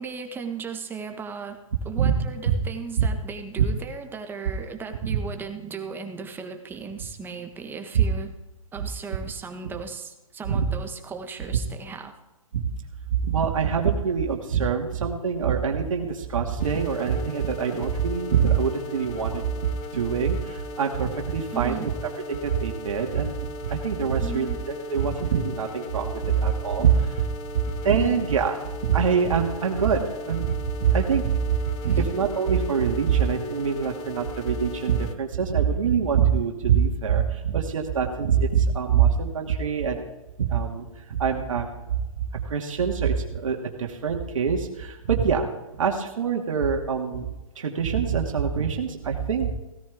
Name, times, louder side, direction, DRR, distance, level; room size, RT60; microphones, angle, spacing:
voice 1, 0.0-1.6 1.8-8.3 8.7-12.1 21.5-21.9 24.2-24.6 27.9-28.2 31.8-32.1, right 5 dB, 10° right, 5 dB, 1.4 m, -36 dB
voice 2, 13.1-27.3 27.5-28.6 28.8-30.6 30.8-31.6 31.8-40.0 40.4-41.7 42.3-47.3 47.6-49.5, right 7 dB, 65° right, 2 dB, 2.3 m, -24 dB
sound 1, 16.6-35.1, left 2 dB, 30° left, 1.1 m, -38 dB
17.0 x 14.5 x 3.6 m, 1.0 s
hypercardioid pair, 130°, 18 cm